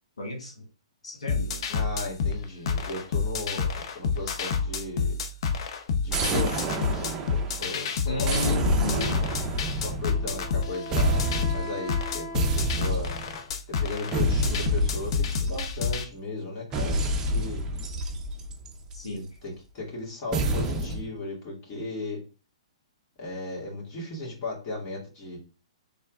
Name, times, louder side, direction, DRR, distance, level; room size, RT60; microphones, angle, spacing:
voice 1, 0.2-0.7 1.0-1.7 8.1-9.2 18.9-19.3, left 1 dB, 75° left, 1.4 m, -32 dB
sound 1, 1.3-16.0, left 5 dB, 50° left, 0.7 m, -29 dB
voice 2, 1.7-5.1 6.0-8.4 9.7-13.1 13.8-17.6 19.1-22.2 23.2-25.4, left 2 dB, 35° left, 2.2 m, -36 dB
sound 2, 6.1-7.7 8.2-10.6 10.9-11.8 12.3-13.4 14.1-16.0 16.7-19.1 20.3-21.1, right 1 dB, 20° right, 0.6 m, -28 dB
Wind instrument woodwind instrument, 9.8-13.4, left 2 dB, 15° left, 1.5 m, -40 dB
4.3 x 3.5 x 2.4 m
hypercardioid pair, 125°, 3 cm